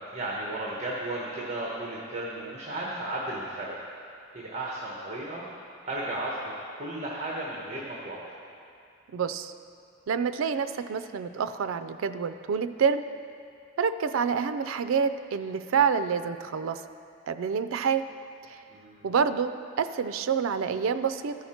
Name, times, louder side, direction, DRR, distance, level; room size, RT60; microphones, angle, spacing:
voice 1, 0.0-3.8 4.3-5.4 5.9-6.4 6.8-8.2 18.7-19.1, right 1 dB, 35° right, -4 dB, 1.1 m, -34 dB
voice 2, 9.1-9.5 10.1-13.0 13.8-16.8 17.3-18.0 18.5-18.6 19.0-21.4, right 6 dB, 90° right, 11 dB, 0.4 m, -27 dB
13.5 x 5.7 x 4.3 m, 2.4 s
head